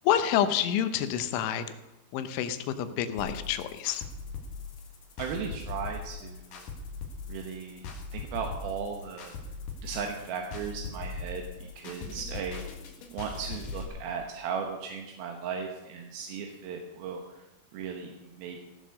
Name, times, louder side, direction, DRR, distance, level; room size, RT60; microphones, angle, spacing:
voice 1, 0.0-1.7 2.1-4.0, left 10 dB, 80° left, 11 dB, 3.1 m, -28 dB
sound 1, 3.2-13.9, left 4 dB, 60° left, 2.6 m, -40 dB
voice 2, 5.2-6.7 7.3-7.8 8.1-9.4 9.8-12.6 13.1-17.5 17.7-18.7, right 6 dB, 70° right, 3 dB, 2.4 m, -37 dB
16.0 x 7.4 x 6.5 m, 0.98 s
omnidirectional pair, 5.6 m